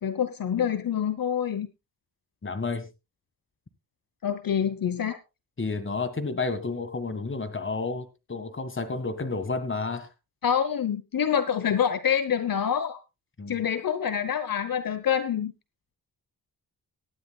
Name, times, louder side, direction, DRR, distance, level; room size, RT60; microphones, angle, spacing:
voice 1, 0.0-1.7 4.2-5.2 10.4-13.0 13.5-15.5, left 8 dB, 60° left, 12 dB, 1.0 m, -26 dB
voice 2, 2.4-2.9 5.6-10.1 13.4-13.6, left 3 dB, 30° left, 10 dB, 1.8 m, -31 dB
18.5 x 12.5 x 2.3 m, 0.26 s
wide cardioid pair, 110°, 38 cm